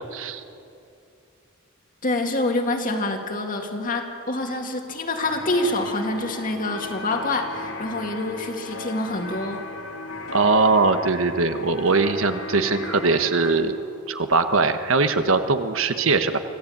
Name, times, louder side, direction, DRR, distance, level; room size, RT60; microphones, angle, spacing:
voice 1, 2.0-9.6, left 2 dB, 40° left, 3 dB, 2.3 m, -26 dB
sound 1, 5.2-13.5, left 2 dB, 75° left, 3.2 m, -36 dB
voice 2, 10.3-13.8 14.1-16.4, right 3 dB, 65° right, 8 dB, 1.2 m, -21 dB
25.5 x 15.5 x 8.7 m, 2.6 s
head